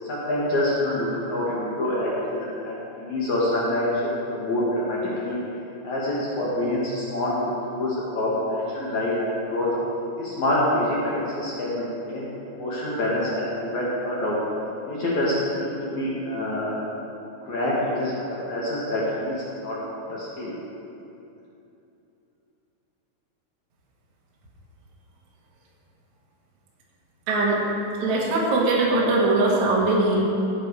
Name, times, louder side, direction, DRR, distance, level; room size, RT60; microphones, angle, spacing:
voice 1, 0.1-5.4 5.8-9.7 10.2-14.4 14.9-16.7 17.4-19.8 20.1-20.5, left 1 dB, 55° left, -6 dB, 2.2 m, -26 dB
voice 2, 27.3-27.6 28.0-30.2, right 2 dB, 65° right, -4 dB, 1.9 m, -21 dB
15.5 x 8.1 x 4.8 m, 2.8 s
omnidirectional pair, 5.7 m